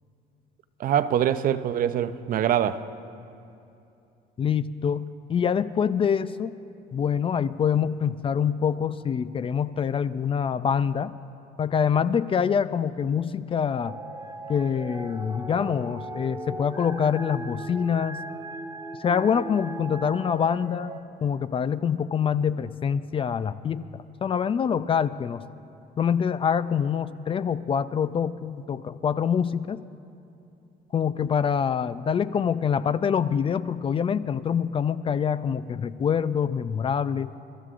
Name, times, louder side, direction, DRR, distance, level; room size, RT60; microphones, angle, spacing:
voice 1, 0.8-2.9, right 10 dB, 55° right, 0.6 m, -24 dB
voice 2, 4.4-6.5 6.9-11.1 11.6-13.9 14.5-18.2 19.0-23.9 24.2-25.4 26.0-29.8 30.9-37.3, left 7 dB, 35° left, 0.4 m, -25 dB
sound 1, 13.7-21.0, right 2 dB, 20° right, 0.9 m, -38 dB
30.0 x 14.0 x 2.5 m
cardioid pair, 110°, 17 cm